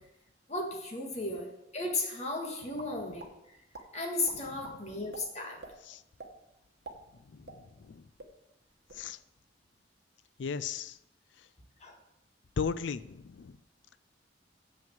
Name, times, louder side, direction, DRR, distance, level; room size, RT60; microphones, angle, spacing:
voice 1, 0.5-1.5 1.7-3.2 3.9-5.6 11.8-11.9, left 2 dB, 40° left, 1 dB, 1.7 m, -34 dB
sound 1, 2.8-3.3 3.7-3.9 4.3-4.8 5.1-5.2 5.6-5.7 6.2-6.3 6.7-7.9 8.2-8.3 8.7-9.0, right 3 dB, 60° right, 1.2 m, -46 dB
voice 2, 7.3-8.1 8.9-9.2 10.4-11.0 12.6-13.6, left 6 dB, 80° left, 16 dB, 0.4 m, -37 dB
7.1 x 5.9 x 7.7 m, 0.85 s
head